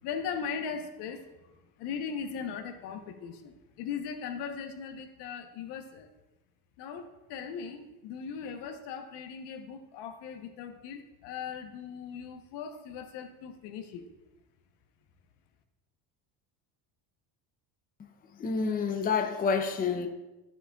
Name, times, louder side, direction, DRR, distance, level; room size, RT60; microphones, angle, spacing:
voice 1, 0.0-1.2 1.8-6.1 6.8-14.0, left 6 dB, 85° left, 6 dB, 1.0 m, -39 dB
voice 2, 18.4-20.1, left 5 dB, 20° left, 5 dB, 0.6 m, -28 dB
12.5 x 6.4 x 2.3 m, 1.1 s
cardioid pair, 145°, 40 cm